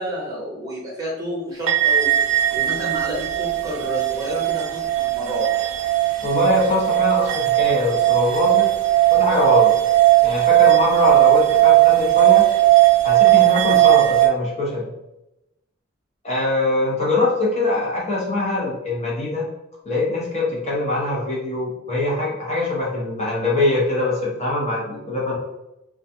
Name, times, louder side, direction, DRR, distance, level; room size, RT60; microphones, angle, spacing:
voice 1, 0.0-2.1 2.5-5.6, equal, 20° right, -4 dB, 0.7 m, -30 dB
sound 1, 1.7-14.3, right 16 dB, 85° right, 0.4 m, -17 dB
voice 2, 6.2-8.7 9.1-9.7 10.2-12.5 13.0-14.9 16.2-19.5 19.8-25.4, left 2 dB, 35° left, -5 dB, 0.9 m, -23 dB
2.3 x 2.3 x 2.7 m, 0.91 s
head